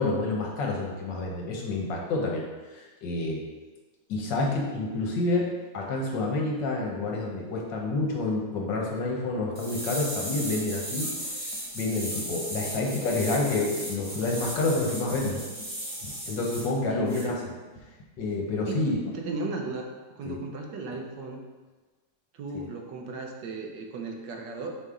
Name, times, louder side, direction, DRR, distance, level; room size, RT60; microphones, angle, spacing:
voice 1, 0.0-2.4 2.7-3.4 4.1-11.1 11.7-15.4 16.0-17.4 18.2-19.0 20.2-20.4 22.5-22.7, left 2 dB, 75° left, -1 dB, 1.7 m, -28 dB
sound 1, 9.5-16.7 17.1-17.2, right 1 dB, 5° right, 1.7 m, -36 dB
voice 2, 16.9-17.5 18.7-18.8 19.1-19.9 20.1-21.4 22.3-24.8, right 3 dB, 75° right, 1 dB, 1.4 m, -36 dB
5.3 x 4.9 x 3.7 m, 1.3 s
omnidirectional pair, 2.0 m